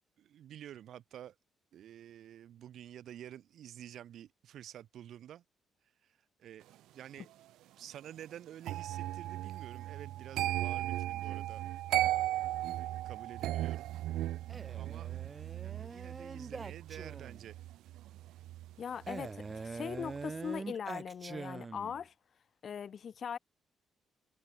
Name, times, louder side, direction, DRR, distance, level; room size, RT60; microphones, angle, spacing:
voice 1, 0.2-1.3 1.7-5.4 6.4-6.7 6.9-7.3 7.8-11.6 12.1-13.9 14.7-15.1 15.6-17.5, right 11 dB, 70° right, 6.3 m, -50 dB
sound 1, 8.6-19.6 19.9-20.3, right 14 dB, 85° right, 2.0 m, -37 dB
Male speech man speaking, 14.5-17.5 19.1-22.0, right 4 dB, 30° right, 1.7 m, -44 dB
voice 2, 18.8-22.1 22.6-23.4, left 7 dB, 55° left, 4.5 m, -40 dB
cardioid pair, 90°, 0 cm